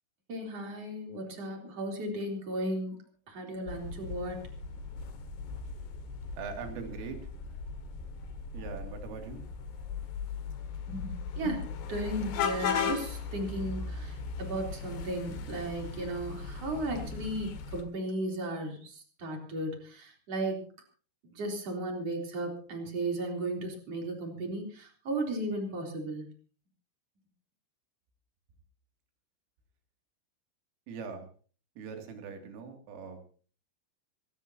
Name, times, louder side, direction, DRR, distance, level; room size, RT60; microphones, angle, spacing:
voice 1, 0.3-3.0 3.3-4.4 10.9-20.7 21.4-26.3, right 1 dB, 35° right, 2 dB, 3.9 m, -35 dB
sound 1, 3.7-17.8, left 5 dB, 65° left, 3.5 m, -38 dB
voice 2, 6.4-7.2 8.5-9.4 30.9-31.3 31.8-33.2, right 5 dB, 75° right, 4 dB, 5.2 m, -41 dB
26.0 x 13.0 x 2.8 m, 0.40 s
omnidirectional pair, 5.9 m